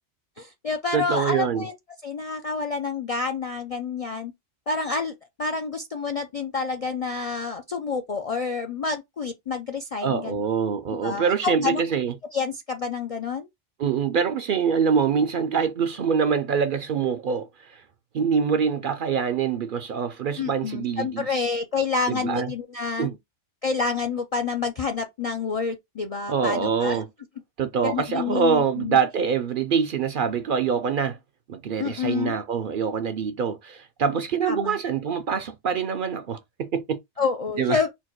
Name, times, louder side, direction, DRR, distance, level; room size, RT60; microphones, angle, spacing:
voice 1, 0.4-1.7 2.0-4.3 4.7-10.4 11.0-11.8 12.3-13.5 20.4-23.1 23.6-27.0 27.8-29.0 31.8-32.3 34.5-34.8 37.2-37.9, left 5 dB, 55° left, 0.4 m, -28 dB
voice 2, 0.9-1.7 10.0-12.1 13.8-17.8 18.1-21.5 22.1-22.5 23.0-23.2 26.3-27.1 27.6-31.2 31.5-37.0 37.6-37.8, right 6 dB, 60° right, 0.6 m, -25 dB
4.4 x 2.2 x 4.4 m
omnidirectional pair, 1.2 m